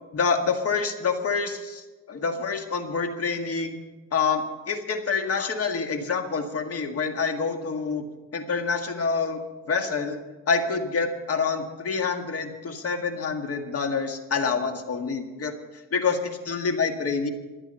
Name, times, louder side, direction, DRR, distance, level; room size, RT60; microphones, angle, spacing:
voice 1, 0.1-3.8 4.1-8.0 8.3-9.4 9.7-10.2 10.5-15.5 15.9-17.3, left 5 dB, 45° left, 5 dB, 1.9 m, -27 dB
24.5 x 8.9 x 5.5 m, 1.2 s
cardioid pair, 105°, 33 cm